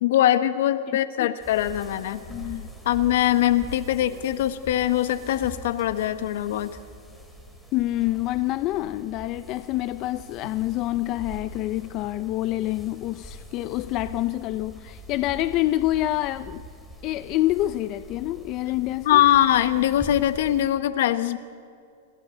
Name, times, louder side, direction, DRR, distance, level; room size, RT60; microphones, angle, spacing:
voice 1, 0.0-2.2 2.8-6.8 19.0-21.4, left 12 dB, 65° left, 11 dB, 1.2 m, -22 dB
sound 1, 1.4-20.7, equal, ahead, 3.1 m, -43 dB
voice 2, 2.3-2.7 7.7-16.6 17.0-19.2, left 16 dB, 35° left, 12 dB, 0.5 m, -27 dB
27.0 x 24.5 x 3.9 m, 2.4 s
supercardioid pair, 145°, 0 cm